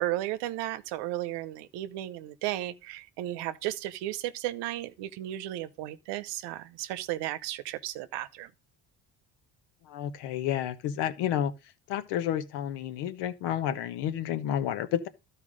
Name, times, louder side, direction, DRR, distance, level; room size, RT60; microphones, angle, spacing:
voice 1, 0.0-8.5, right 15 dB, 90° right, 0.8 m, -34 dB
voice 2, 9.8-11.5 11.9-15.1, left 10 dB, 85° left, 1.2 m, -30 dB
12.0 x 4.7 x 5.0 m
cardioid pair, 85°, 40 cm